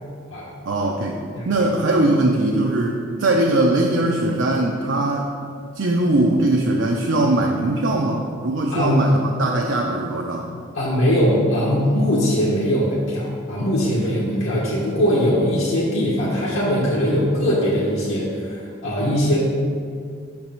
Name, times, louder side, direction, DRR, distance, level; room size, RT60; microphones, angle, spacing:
voice 1, 0.7-1.2 1.5-5.3 5.7-10.5, right 2 dB, 65° right, 1 dB, 0.5 m, -20 dB
voice 2, 10.7-19.4, equal, 75° left, -7 dB, 1.2 m, -21 dB
5.8 x 4.6 x 5.4 m, 2.2 s
head